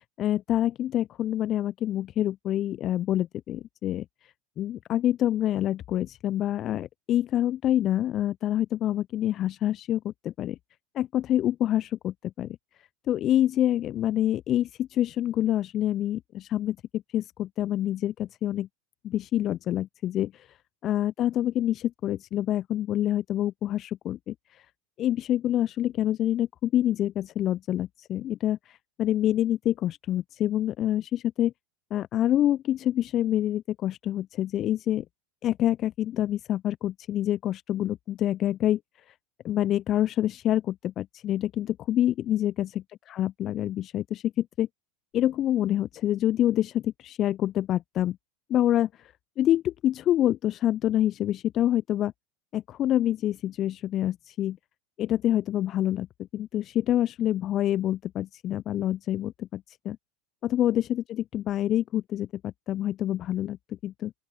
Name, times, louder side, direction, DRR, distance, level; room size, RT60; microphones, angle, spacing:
voice 1, 0.0-10.6 10.9-12.6 13.1-18.7 19.0-20.6 20.8-24.7 25.0-31.5 31.9-35.0 35.4-38.8 39.4-44.7 45.1-48.2 48.5-52.1 52.5-54.6 55.0-60.0 60.4-64.1, left 12 dB, 40° left, 0.8 m, -27 dB
open air
figure-of-eight pair, 80°, 0 cm